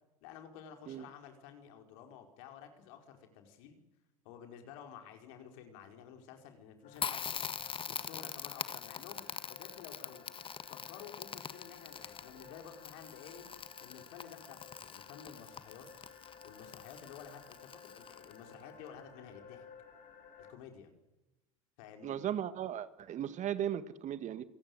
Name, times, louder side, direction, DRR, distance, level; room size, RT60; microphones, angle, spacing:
voice 1, 0.2-3.8 4.2-7.5 7.9-10.2 10.7-13.5 13.8-15.9 16.4-19.7 20.4-20.9 21.8-22.2, left 8 dB, 65° left, 5 dB, 4.9 m, -52 dB
sound 1, 6.8-20.5, left 6 dB, 45° left, 7.2 m, -56 dB
Crackle, 7.0-18.5, left 7 dB, 30° left, 1.6 m, -44 dB
voice 2, 22.0-24.4, right 10 dB, 40° right, 13 dB, 1.7 m, -36 dB
27.5 x 17.5 x 8.0 m, 0.99 s
hypercardioid pair, 85°, 18 cm